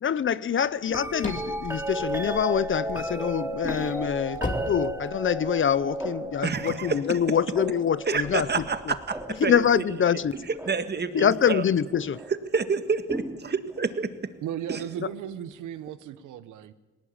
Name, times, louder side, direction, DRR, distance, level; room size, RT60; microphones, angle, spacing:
voice 1, 0.0-4.4 4.7-8.9 9.4-10.3 11.1-12.2, left 8 dB, 40° left, 0.7 m, -25 dB
sound 1, 0.7-2.9 3.4-5.6, left 2 dB, 25° left, 2.8 m, -34 dB
sound 2, 0.9-11.0 11.9-12.3 13.1-14.1 15.9-16.0, right 1 dB, 10° right, 2.5 m, -35 dB
voice 2, 6.4-7.2 8.1-9.8 10.7-11.6 12.5-14.1 14.7-15.0, right 5 dB, 35° right, 1.8 m, -28 dB
voice 3, 14.4-16.7, right 10 dB, 85° right, 1.1 m, -36 dB
19.5 x 18.5 x 8.7 m
cardioid pair, 90°, 30 cm